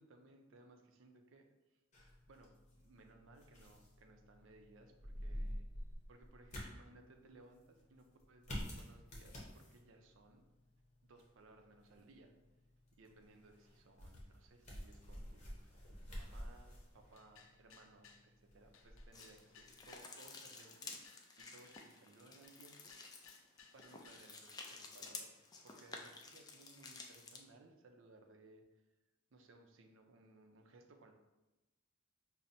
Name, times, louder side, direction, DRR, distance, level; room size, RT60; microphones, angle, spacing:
voice 1, 0.0-1.8 2.3-5.7 6.1-10.5 11.0-12.3 12.9-21.0 21.4-22.9 23.7-25.3 25.6-28.6 29.3-31.1, right 2 dB, 75° right, 4 dB, 0.5 m, -63 dB
sound 1, 1.9-20.0, equal, 35° left, 0.8 m, -50 dB
sound 2, 17.1-18.3 18.7-20.1 20.6-22.0 22.4-24.3, left 6 dB, 85° left, 0.4 m, -63 dB
sound 3, 19.1-27.4, left 4 dB, 20° left, 0.3 m, -52 dB
5.5 x 2.0 x 2.6 m, 1.0 s
head